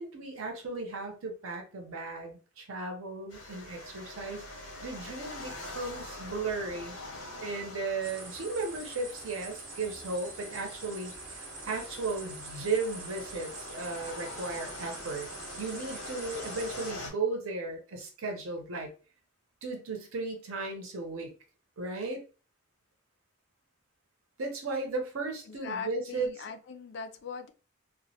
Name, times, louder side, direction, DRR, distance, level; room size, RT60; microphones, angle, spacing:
voice 1, 0.0-4.5 4.8-7.0 7.4-15.3 15.6-18.9 19.6-21.3 21.8-22.2 24.4-26.3, right 3 dB, 85° right, 0.7 m, -35 dB
sound 1, 3.3-17.1, left 2 dB, 85° left, 0.7 m, -44 dB
sound 2, 8.0-16.9, right 4 dB, 40° right, 0.5 m, -45 dB
voice 2, 25.5-27.5, left 5 dB, 55° left, 0.3 m, -40 dB
2.2 x 2.1 x 2.7 m
head